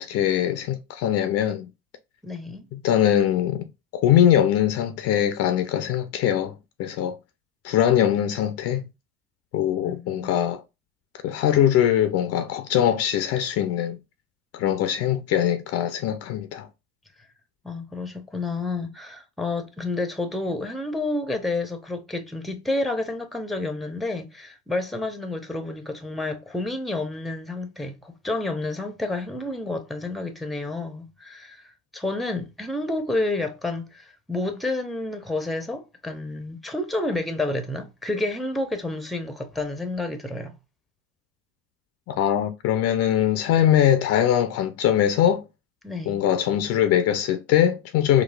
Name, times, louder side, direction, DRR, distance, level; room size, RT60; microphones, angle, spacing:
voice 1, 0.0-1.7 2.7-3.7 3.9-7.2 7.6-8.9 9.5-10.6 11.2-14.0 14.5-16.7 42.1-45.4 46.1-48.2, left 10 dB, 50° left, 0.5 m, -22 dB
voice 2, 2.2-2.6 9.8-10.5 17.6-40.5 45.8-46.2, left 2 dB, ahead, 0.7 m, -30 dB
3.9 x 2.3 x 2.2 m
hypercardioid pair, 70°, 31 cm